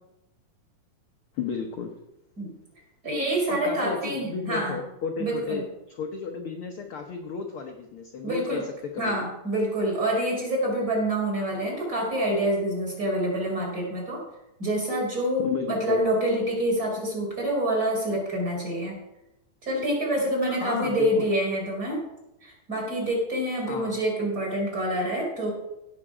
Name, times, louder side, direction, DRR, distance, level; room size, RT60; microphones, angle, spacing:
voice 1, 1.3-1.9 3.4-9.3 15.4-16.0 20.5-21.3 23.7-24.0, left 5 dB, 90° left, 4 dB, 1.1 m, -33 dB
voice 2, 3.0-4.8 5.2-5.6 8.2-8.6 9.0-14.2 14.6-19.0 19.6-22.0 22.4-25.5, right 1 dB, 25° right, -2 dB, 4.8 m, -27 dB
16.5 x 7.5 x 4.9 m, 0.90 s
omnidirectional pair, 3.8 m